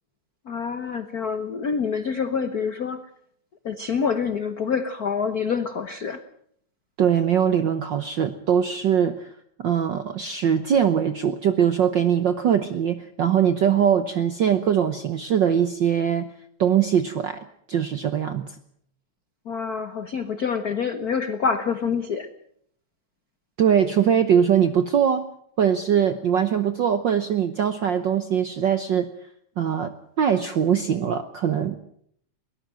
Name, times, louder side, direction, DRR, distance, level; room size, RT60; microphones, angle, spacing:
voice 1, 0.5-3.0 3.6-6.2 19.4-22.3, left 6 dB, 70° left, 11 dB, 0.9 m, -26 dB
voice 2, 7.0-9.3 9.6-16.3 16.6-17.4 17.7-18.6 23.6-25.2 25.6-29.1 29.6-29.9 30.2-31.8, right 8 dB, 70° right, 10 dB, 1.1 m, -21 dB
21.5 x 18.0 x 7.6 m, 0.67 s
omnidirectional pair, 3.3 m